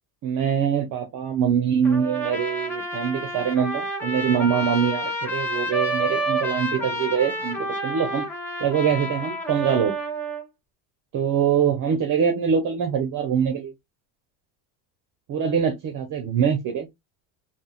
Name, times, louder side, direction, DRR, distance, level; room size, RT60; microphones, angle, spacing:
voice 1, 0.2-8.2 8.6-10.0 11.1-13.7 15.3-16.9, right 7 dB, 50° right, 1.0 m, -23 dB
Trumpet, 1.8-10.4, right 1 dB, 5° left, 1.6 m, -29 dB
3.7 x 2.4 x 2.4 m
cardioid pair, 115°, 41 cm